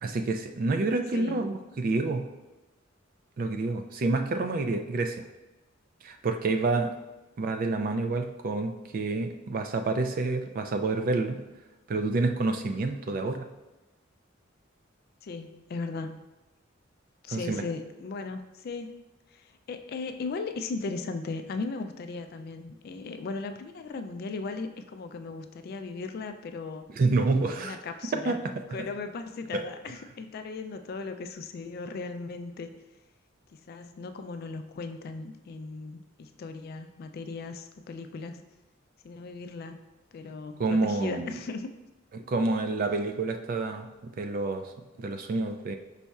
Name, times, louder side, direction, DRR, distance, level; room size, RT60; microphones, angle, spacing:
voice 1, 0.0-2.2 3.4-5.2 6.0-6.9 7.4-11.4 11.9-13.5 17.3-17.6 27.0-27.8 28.3-28.4 29.5-29.6 40.6-41.4 42.1-44.6 45.0-45.8, right 3 dB, 45° right, 6 dB, 0.3 m, -28 dB
voice 2, 15.2-16.2 17.2-18.9 19.3-26.9 27.5-28.4 28.7-32.7 33.5-38.4 39.0-39.8 40.1-41.7, left 4 dB, 50° left, 8 dB, 0.3 m, -37 dB
5.3 x 4.1 x 2.3 m, 1.1 s
head